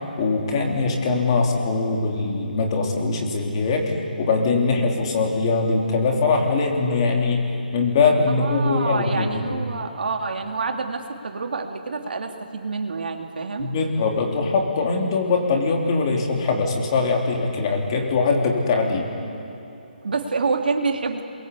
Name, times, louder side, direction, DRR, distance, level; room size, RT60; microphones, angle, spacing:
voice 1, 0.2-7.5 7.7-9.6 13.6-19.1, left 3 dB, 35° left, 1 dB, 3.5 m, -22 dB
voice 2, 8.4-13.7 20.0-21.2, right 4 dB, 70° right, 3 dB, 2.6 m, -27 dB
28.0 x 22.5 x 8.4 m, 2.8 s
hypercardioid pair, 165°, 5 cm